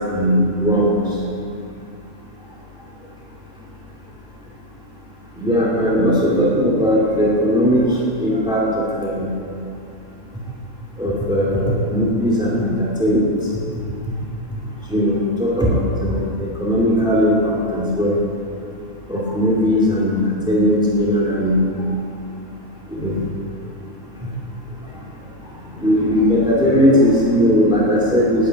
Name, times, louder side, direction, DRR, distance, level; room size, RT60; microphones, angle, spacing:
voice 1, 0.1-0.9 5.4-7.8 8.2-9.3 11.0-13.2 14.9-16.3 16.6-18.1 19.1-21.6 22.9-23.2 25.8-28.5, equal, 5° right, -5 dB, 2.3 m, -18 dB
9.9 x 9.6 x 9.2 m, 2.4 s
omnidirectional pair, 1.4 m